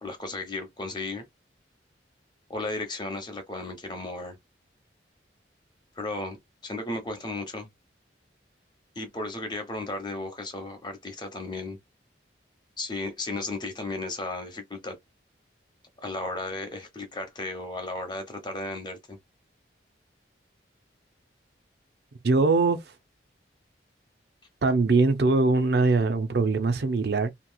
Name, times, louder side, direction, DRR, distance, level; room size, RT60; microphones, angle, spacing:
voice 1, 0.0-1.2 2.5-4.4 6.0-6.4 6.6-7.7 9.0-11.8 12.8-15.0 16.0-19.2, left 2 dB, 25° left, 0.9 m, -34 dB
voice 2, 22.2-22.8 24.6-27.3, right 3 dB, 60° right, 0.5 m, -22 dB
2.9 x 2.9 x 2.3 m
head